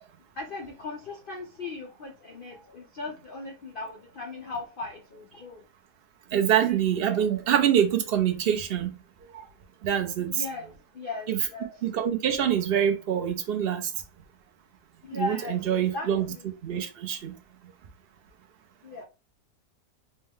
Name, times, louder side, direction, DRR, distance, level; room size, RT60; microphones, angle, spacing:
voice 1, 0.4-5.6 10.3-11.8 15.0-16.5 18.8-19.0, left 3 dB, 80° left, 0.4 m, -38 dB
voice 2, 6.3-8.9 9.8-10.5 11.3-11.4 11.8-13.9 15.1-16.3 16.6-17.3, right 9 dB, 55° right, 0.7 m, -25 dB
4.4 x 2.2 x 3.6 m
omnidirectional pair, 1.7 m